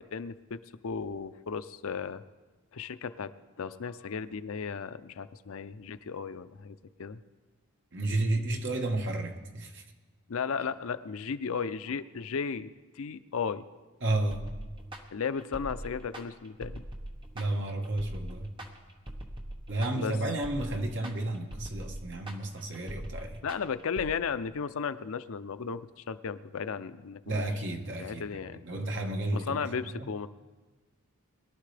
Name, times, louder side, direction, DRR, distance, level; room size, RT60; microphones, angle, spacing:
voice 1, 0.0-2.2 2.7-3.3 3.6-7.2 10.3-12.7 13.0-13.7 15.1-16.8 20.0-20.1 23.4-27.5 28.0-28.6 29.3-30.3, left 6 dB, 65° left, 0.5 m, -35 dB
voice 2, 7.9-9.8 14.0-14.5 17.3-18.5 19.7-23.4 27.2-30.1, right 2 dB, 55° right, 1.3 m, -32 dB
sound 1, 14.3-24.1, right 1 dB, 20° right, 1.1 m, -42 dB
22.0 x 12.0 x 3.4 m
head